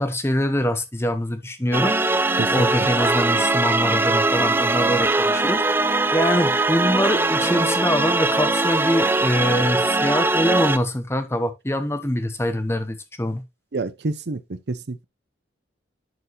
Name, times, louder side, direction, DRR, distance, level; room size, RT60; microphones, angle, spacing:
voice 1, 0.0-2.0 2.5-5.6 6.1-13.4, left 1 dB, 15° left, 1.0 m, -24 dB
sound 1, 1.7-10.8, right 2 dB, 10° right, 0.4 m, -21 dB
voice 2, 13.7-15.0, right 3 dB, 60° right, 0.7 m, -28 dB
11.0 x 4.6 x 3.1 m
head